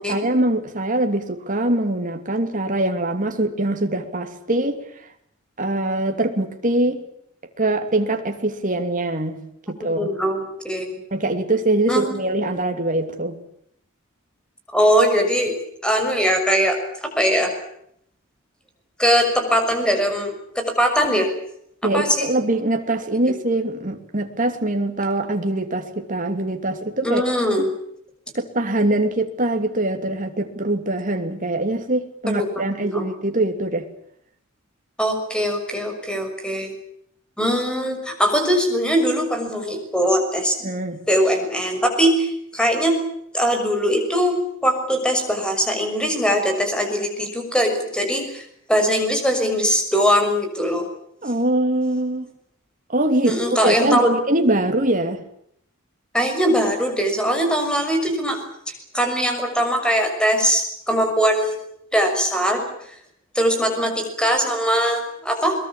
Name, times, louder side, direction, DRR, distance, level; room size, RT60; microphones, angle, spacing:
voice 1, 0.1-4.8 5.6-7.0 7.6-9.4 9.7-10.1 11.1-13.4 21.8-27.2 27.6-27.7 28.3-33.9 40.6-41.0 51.2-52.3 52.9-55.2, right 1 dB, 40° right, 5 dB, 2.9 m, -23 dB
voice 2, 10.0-10.8 11.9-12.2 14.7-15.5 15.8-17.5 19.0-21.3 21.9-22.3 27.0-27.7 32.3-32.6 32.9-33.1 35.0-36.7 37.4-40.6 41.1-42.9 43.3-44.4 44.6-50.9 53.2-54.1 56.1-58.4 58.7-61.6 61.9-62.7 63.3-65.5, equal, 5° left, 4 dB, 6.3 m, -21 dB
22.5 x 22.5 x 8.7 m, 0.72 s
head